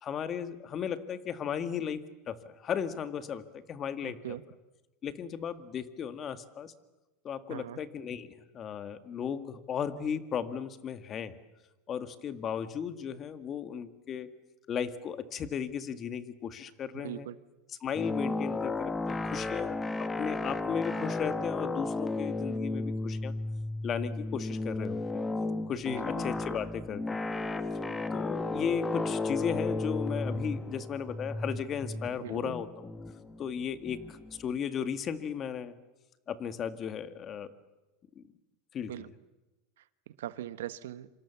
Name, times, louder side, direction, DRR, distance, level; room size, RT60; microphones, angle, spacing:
voice 1, 0.0-4.4 5.0-6.7 7.2-11.4 11.9-14.3 14.7-17.3 17.8-23.3 23.8-25.2 25.7-27.2 28.1-32.9 33.4-35.7 36.3-37.5 38.2-38.3 38.7-38.9, left 7 dB, 30° left, 10 dB, 1.9 m, -35 dB
voice 2, 4.0-4.4 7.5-7.8 16.9-17.4 25.9-26.2 32.2-32.5 38.9-39.1 39.8-41.1, right 12 dB, 90° right, 14 dB, 1.2 m, -41 dB
sound 1, 17.9-34.5, left 2 dB, 15° left, 1.4 m, -34 dB
27.0 x 26.0 x 7.2 m, 1.1 s
supercardioid pair, 130°, 0 cm